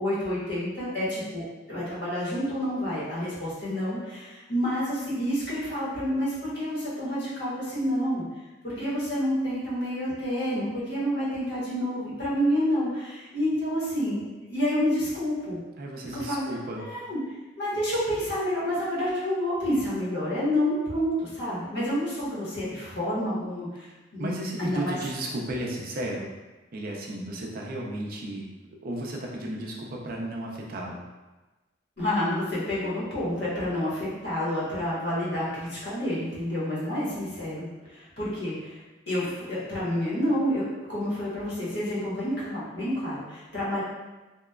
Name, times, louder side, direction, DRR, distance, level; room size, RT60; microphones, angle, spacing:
voice 1, 0.0-8.2 8.6-15.6 16.1-17.2 17.6-23.9 24.1-24.3 24.6-25.0 32.0-38.8 39.1-43.8, equal, 65° left, -9 dB, 1.1 m, -29 dB
voice 2, 15.8-16.8 24.2-26.3 26.7-28.4 28.8-31.0, right 1 dB, 50° right, -1 dB, 0.4 m, -34 dB
2.8 x 2.2 x 2.3 m, 1.2 s
head